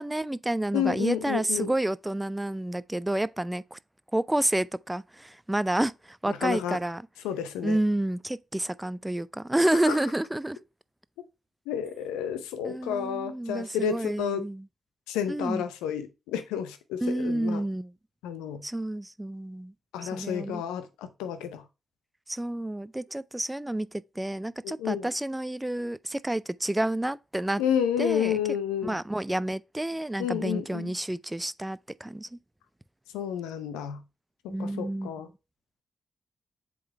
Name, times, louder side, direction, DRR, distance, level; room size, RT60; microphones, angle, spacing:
voice 1, 0.0-3.8 4.1-7.0 7.6-10.6 12.6-14.7 15.3-15.6 17.0-17.9 18.6-19.7 20.0-20.6 22.3-27.6 28.0-28.4 28.8-32.3 34.5-35.1, right 1 dB, 15° right, 0.4 m, -29 dB
voice 2, 0.7-1.7 6.4-6.8 7.2-7.8 9.9-10.0 11.7-14.5 15.1-17.6 18.2-18.6 19.9-21.6 24.6-25.1 27.6-29.0 30.2-30.9 33.1-34.0 34.4-35.3, left 9 dB, 90° left, 0.6 m, -30 dB
7.7 x 3.9 x 3.2 m
hypercardioid pair, 40°, 0 cm